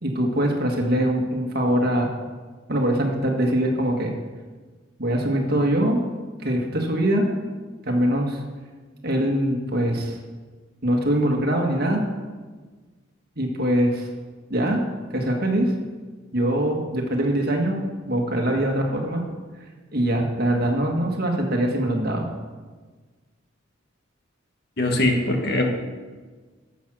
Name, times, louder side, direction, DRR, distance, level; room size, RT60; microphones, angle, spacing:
voice 1, 0.0-2.1 2.7-4.1 5.0-6.0 6.4-7.3 7.9-8.4 9.0-10.2 10.8-12.0 13.4-14.1 14.5-14.8 15.1-15.7 16.3-17.8 18.1-19.2 19.9-22.3, right 1 dB, 50° right, 1 dB, 1.8 m, -22 dB
voice 2, 24.8-25.7, left 1 dB, 55° left, 3 dB, 1.5 m, -21 dB
11.0 x 7.4 x 6.3 m, 1.4 s
head